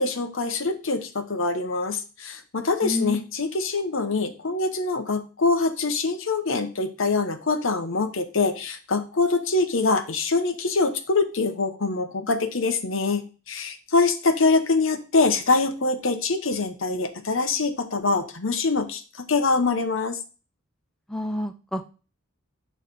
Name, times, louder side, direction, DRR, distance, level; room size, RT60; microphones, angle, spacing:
voice 1, 0.0-20.2, left 3 dB, 70° left, 7 dB, 1.0 m, -24 dB
voice 2, 2.8-3.2 21.1-21.9, left 1 dB, 5° left, 7 dB, 0.4 m, -29 dB
8.8 x 3.3 x 5.2 m, 0.34 s
head